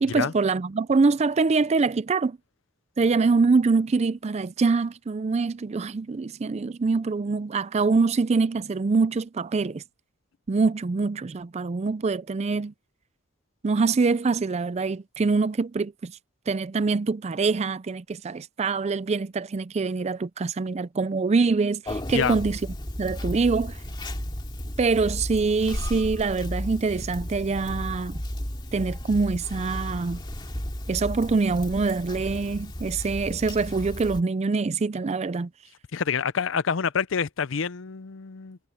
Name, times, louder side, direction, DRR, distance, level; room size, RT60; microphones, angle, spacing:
voice 1, 0.0-2.4 3.0-9.8 10.5-12.7 13.6-16.1 16.5-22.6 23.0-23.8 24.8-28.2 28.7-30.2 30.9-35.5, right 4 dB, 35° right, 0.4 m, -24 dB
Conversation, 21.9-34.2, equal, 25° left, 2.4 m, -34 dB
voice 2, 35.9-38.6, left 6 dB, 75° left, 0.6 m, -27 dB
head